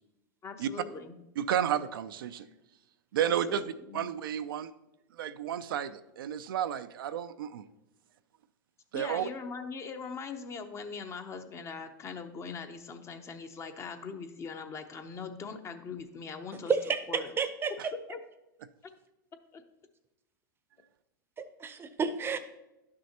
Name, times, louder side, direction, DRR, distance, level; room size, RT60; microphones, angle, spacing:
voice 1, 0.4-1.2 2.5-2.6 3.2-4.1 8.9-16.7 17.1-17.3 17.8-18.2 19.5-19.6, left 5 dB, 25° left, 7 dB, 0.7 m, -41 dB
voice 2, 1.4-2.5 3.1-4.7 5.2-7.6 8.9-9.3 17.8-17.9, right 10 dB, 80° right, 11 dB, 0.4 m, -32 dB
voice 3, 16.7-17.7 21.4-22.4, right 5 dB, 20° right, 11 dB, 0.6 m, -31 dB
11.0 x 6.2 x 2.9 m, 0.95 s
hypercardioid pair, 115°, 11 cm